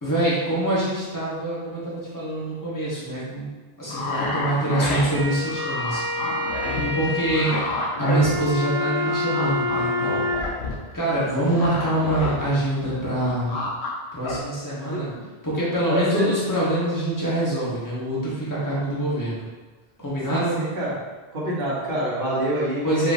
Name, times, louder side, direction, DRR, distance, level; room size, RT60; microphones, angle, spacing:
voice 1, 0.0-3.5 3.8-6.0 6.9-7.6 8.0-10.3 10.9-13.5 14.1-15.1 15.4-19.5 20.0-20.6 22.8-23.1, right 1 dB, 20° left, -9 dB, 1.2 m, -25 dB
sound 1, 3.9-8.8 9.0-12.5 12.7-13.9 14.2-14.4, left 2 dB, 85° left, 1.0 m, -30 dB
sound 2, 4.9-10.5, left 1 dB, 55° left, 1.7 m, -27 dB
voice 2, 6.7-7.1 14.9-15.2 15.9-16.3 20.3-20.9 21.3-23.1, equal, 60° right, -8 dB, 1.4 m, -27 dB
5.1 x 3.1 x 2.6 m, 1.3 s
omnidirectional pair, 1.0 m